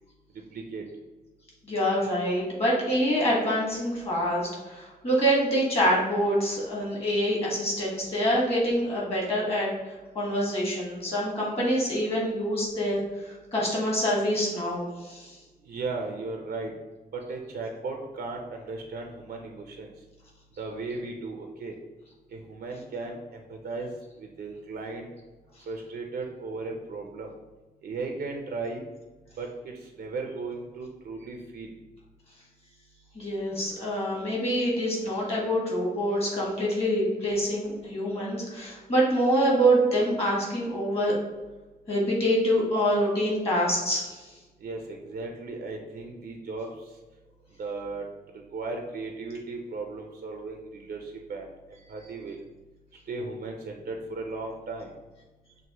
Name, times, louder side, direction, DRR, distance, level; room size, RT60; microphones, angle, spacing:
voice 1, 0.5-0.8 15.7-16.7 17.1-19.9 20.6-21.7 22.3-23.9 24.2-25.1 25.7-27.3 27.8-28.8 29.4-29.5 30.0-31.7 44.6-46.7 47.6-48.1 48.5-50.6 50.9-51.0 51.3-51.5 51.9-52.4 53.1-54.9, right 3 dB, 80° right, 2 dB, 0.5 m, -36 dB
voice 2, 1.6-9.7 10.1-15.4 33.1-41.1 41.9-44.3, equal, 40° left, -4 dB, 1.4 m, -26 dB
6.0 x 2.5 x 3.0 m, 1.2 s
wide cardioid pair, 145°, 16 cm